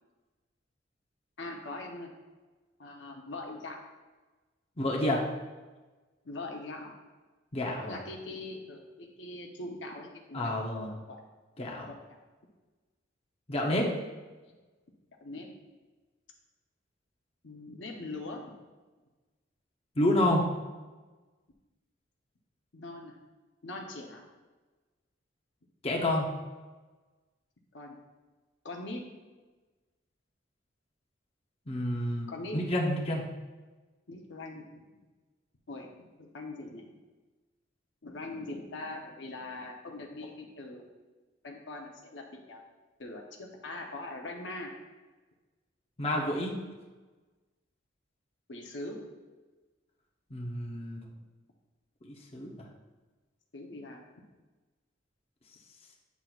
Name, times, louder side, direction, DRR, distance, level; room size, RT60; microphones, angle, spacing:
voice 1, 1.4-2.1 2.8-3.8 6.2-6.9 7.8-10.6 11.1-11.2 11.9-12.0 13.7-13.8 15.2-15.5 17.4-18.4 22.7-23.2 23.6-24.2 27.7-28.0 28.6-29.1 32.3-32.7 34.1-34.6 35.7-35.9 36.2-36.8 38.0-40.9 41.4-42.6 43.0-44.7 48.5-49.1 53.5-54.0, left 2 dB, 70° left, 1 dB, 0.8 m, -41 dB
voice 2, 4.8-5.2 7.5-8.0 10.3-10.9 11.6-11.9 13.5-13.9 20.0-20.4 25.8-26.3 31.7-32.3 32.5-33.2 46.0-46.5 50.3-51.0 52.0-52.5, left 1 dB, 30° left, -1 dB, 0.8 m, -29 dB
8.3 x 5.9 x 2.4 m, 1.3 s
head